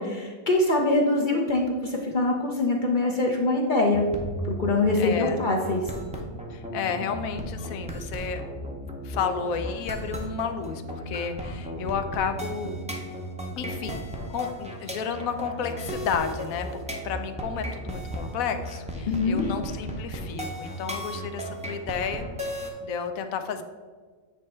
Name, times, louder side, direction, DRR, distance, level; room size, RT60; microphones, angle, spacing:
voice 1, 0.0-4.0 4.4-5.8 19.1-19.5, left 2 dB, 50° left, 1 dB, 0.6 m, -24 dB
sound 1, 3.9-22.7, equal, 10° right, 0.5 m, -35 dB
voice 2, 5.0-5.4 6.5-8.4 9.0-12.8 13.6-14.0 14.3-16.7 17.0-22.3 22.8-23.6, left 6 dB, 90° left, 8 dB, 1.0 m, -31 dB
8.5 x 3.2 x 4.3 m, 1.5 s
omnidirectional pair, 1.4 m